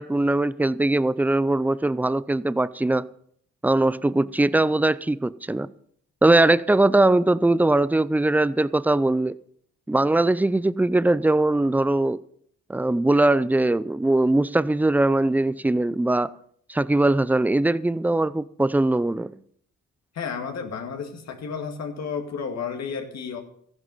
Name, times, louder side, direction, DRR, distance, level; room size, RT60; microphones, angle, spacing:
voice 1, 0.0-3.1 3.6-5.7 6.2-9.4 9.9-12.2 12.7-16.3 16.7-19.3, right 2 dB, 5° right, 0.4 m, -21 dB
voice 2, 20.1-23.4, left 6 dB, 60° left, 2.2 m, -32 dB
14.0 x 10.5 x 5.5 m
cardioid pair, 90°, 30 cm